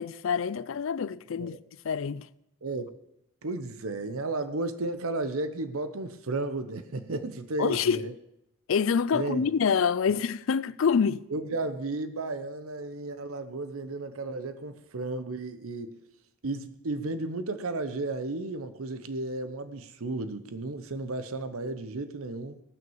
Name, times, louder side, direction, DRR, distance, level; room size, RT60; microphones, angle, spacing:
voice 1, 0.0-1.6 1.8-2.3 7.6-8.0 8.7-11.2, left 6 dB, 75° left, 0.4 m, -26 dB
voice 2, 2.6-2.9 3.4-8.1 9.1-9.4 11.3-16.0 16.4-22.6, right 2 dB, 85° right, 0.8 m, -33 dB
17.5 x 6.2 x 7.2 m
head